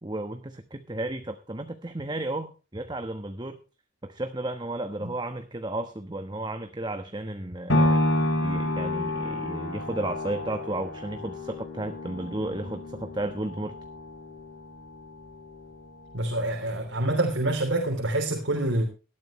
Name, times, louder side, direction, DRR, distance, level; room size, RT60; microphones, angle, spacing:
voice 1, 0.0-3.6 4.0-13.7, right 2 dB, 20° right, 8 dB, 1.2 m, -33 dB
sound 1, 7.7-15.8 16.3-16.4, left 1 dB, 75° left, 5.1 m, -29 dB
voice 2, 16.1-18.8, right 1 dB, 80° right, 2 dB, 3.5 m, -26 dB
19.0 x 13.5 x 3.2 m, 0.32 s
head